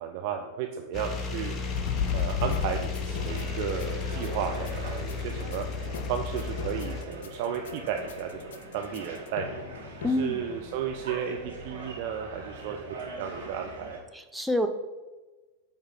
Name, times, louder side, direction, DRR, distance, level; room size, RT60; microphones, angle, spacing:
voice 1, 0.0-1.5 2.1-5.6 6.1-8.4 8.7-9.5 10.1-14.0, right 8 dB, 45° right, 3 dB, 0.6 m, -33 dB
sound 1, 0.9-7.0, left 4 dB, 25° left, 0.8 m, -34 dB
sound 2, 1.7-10.9, left 7 dB, 55° left, 0.5 m, -37 dB
sound 3, 3.2-14.0, right 2 dB, 70° right, 2.3 m, -42 dB
voice 2, 10.0-10.4 14.1-14.7, left 1 dB, 5° right, 6 dB, 0.6 m, -27 dB
8.0 x 3.6 x 5.5 m, 1.2 s
figure-of-eight pair, 90°, 0 cm